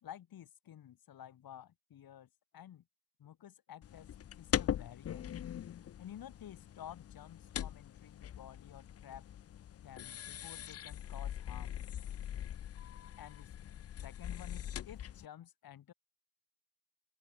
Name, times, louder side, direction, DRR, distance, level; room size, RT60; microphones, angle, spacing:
voice 1, 0.0-2.8 3.2-4.1 4.4-5.3 6.0-9.2 9.8-11.8 13.2-13.5 14.0-15.9, left 10 dB, 55° left, 2.3 m, -52 dB
sound 1, 3.8-15.3, left 10 dB, 35° left, 0.6 m, -42 dB
open air
hypercardioid pair, 50°, 41 cm